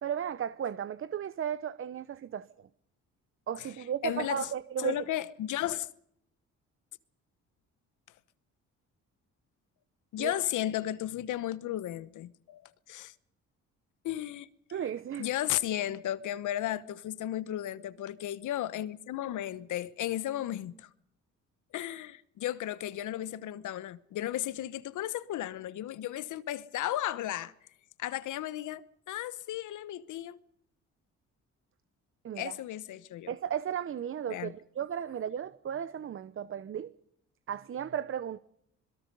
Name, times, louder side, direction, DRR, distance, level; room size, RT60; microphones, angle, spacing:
voice 1, 0.0-2.5 3.5-5.0 10.2-10.3 14.7-15.3 32.2-32.6 33.3-36.9 37.5-38.4, right 9 dB, 45° right, 0.8 m, -35 dB
voice 2, 4.0-4.5 4.8-5.9 10.1-12.6 12.9-13.1 14.0-14.5 15.2-20.9 21.7-27.5 28.0-30.4 32.4-33.3 34.3-34.5, left 13 dB, 80° left, 1.1 m, -34 dB
26.0 x 21.5 x 5.4 m
cardioid pair, 90°, 30 cm